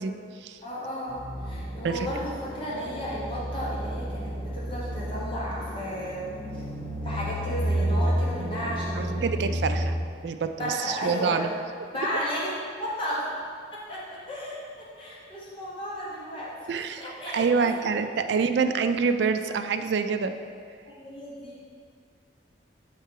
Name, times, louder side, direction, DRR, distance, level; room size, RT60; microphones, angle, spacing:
voice 1, 0.0-0.6 1.8-2.1 9.0-10.0 10.2-11.5 16.7-20.3, right 5 dB, 70° right, 8 dB, 0.3 m, -27 dB
voice 2, 0.6-6.6 7.0-9.3 10.6-11.4 11.9-12.5 12.8-13.2 13.9-14.6 15.0-16.5 17.0-17.8 20.8-21.7, equal, 25° left, -7 dB, 1.1 m, -34 dB
sound 1, 1.1-9.9, equal, 25° right, 1.5 m, -31 dB
6.7 x 4.6 x 4.6 m, 2.2 s
head